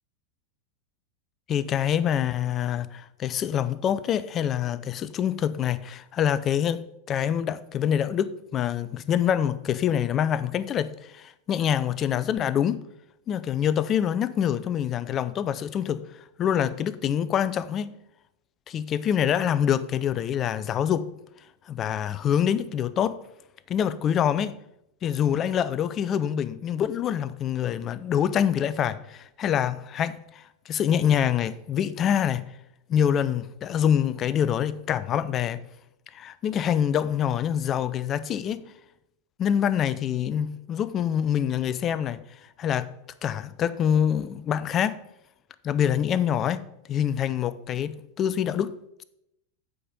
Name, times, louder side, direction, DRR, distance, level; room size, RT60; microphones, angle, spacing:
voice 1, 1.5-12.8 13.3-16.0 16.4-17.9 18.7-21.1 21.7-23.2 23.7-24.6 25.0-32.5 32.9-35.6 36.1-38.6 39.4-42.2 42.6-42.9 43.2-45.0 45.6-46.6 46.9-48.7, left 9 dB, 35° left, 0.5 m, -25 dB
8.6 x 5.0 x 5.2 m
figure-of-eight pair, 90°, 0 cm